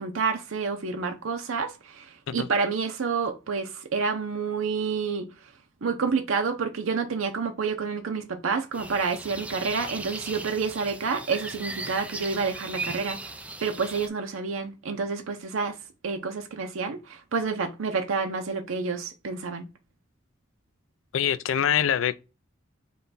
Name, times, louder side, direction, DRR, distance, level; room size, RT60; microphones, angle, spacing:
voice 1, 0.0-5.3 5.8-15.8 16.0-19.7, right 5 dB, 85° right, 0.6 m, -29 dB
sound 1, 8.7-14.1, right 2 dB, 5° right, 0.3 m, -38 dB
voice 2, 21.1-22.1, left 9 dB, 75° left, 0.4 m, -24 dB
5.4 x 2.3 x 3.9 m
head